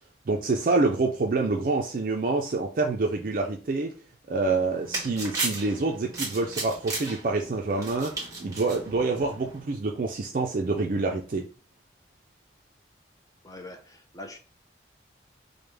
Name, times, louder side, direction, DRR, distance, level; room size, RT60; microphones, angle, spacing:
voice 1, 0.3-3.9 4.3-11.5, right 3 dB, 50° right, 0.4 m, -27 dB
sound 1, 4.4-9.6, right 3 dB, 20° right, 1.2 m, -35 dB
voice 2, 13.4-14.4, left 1 dB, 20° left, 0.5 m, -43 dB
5.0 x 2.1 x 3.3 m
head